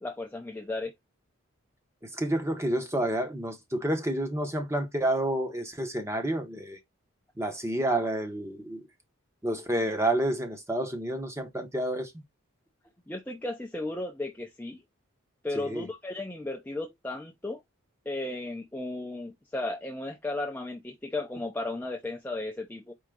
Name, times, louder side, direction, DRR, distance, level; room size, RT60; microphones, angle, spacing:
voice 1, 0.0-0.9 13.1-14.8 15.4-17.6 18.1-22.9, left 2 dB, 10° left, 0.4 m, -35 dB
voice 2, 2.1-6.8 7.4-8.8 9.4-12.1 15.5-15.9, right 1 dB, 15° right, 0.8 m, -29 dB
4.6 x 2.7 x 3.7 m
head